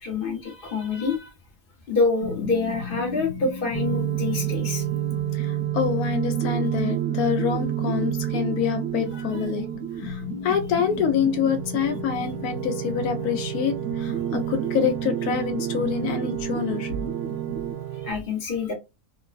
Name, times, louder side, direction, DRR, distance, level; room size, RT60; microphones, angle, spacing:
voice 1, 0.0-1.3 1.9-4.8 9.1-9.3 18.0-18.7, left 4 dB, 45° left, 0.8 m, -26 dB
sound 1, 2.2-17.7, right 4 dB, 45° right, 0.8 m, -33 dB
sound 2, 3.7-18.1, right 14 dB, 80° right, 1.1 m, -31 dB
voice 2, 5.3-9.7 10.0-17.1, left 8 dB, 80° left, 1.1 m, -26 dB
3.0 x 2.0 x 2.4 m
omnidirectional pair, 1.6 m